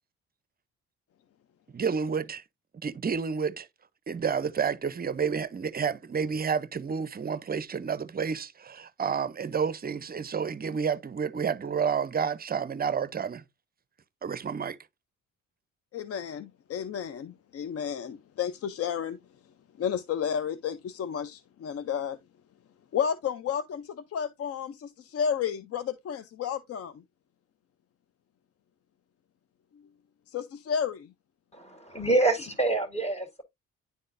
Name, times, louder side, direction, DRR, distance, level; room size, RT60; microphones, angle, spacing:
voice 1, 1.7-2.4 2.8-3.7 4.1-13.4 14.2-14.8, right 6 dB, 30° right, 0.6 m, -30 dB
voice 2, 15.9-19.2 19.8-22.2 22.9-27.0 29.7-29.8 30.3-31.1, left 8 dB, 50° left, 0.5 m, -32 dB
voice 3, 31.5-33.4, right 2 dB, 20° left, 2.1 m, -26 dB
10.5 x 3.8 x 2.5 m
cardioid pair, 90°, 30 cm